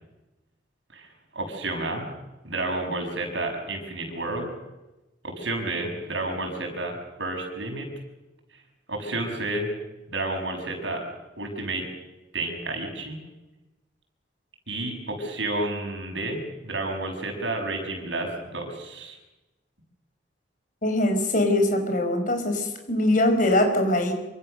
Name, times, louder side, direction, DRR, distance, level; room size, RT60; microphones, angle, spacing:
voice 1, 1.3-2.0 2.4-4.5 5.2-7.9 8.9-9.7 10.1-11.0 11.4-11.9 12.3-13.2 14.7-19.2, right 2 dB, 80° right, 3 dB, 6.6 m, -30 dB
voice 2, 20.8-24.1, left 1 dB, 45° left, 5 dB, 5.1 m, -22 dB
26.5 x 25.0 x 6.7 m, 1.0 s
head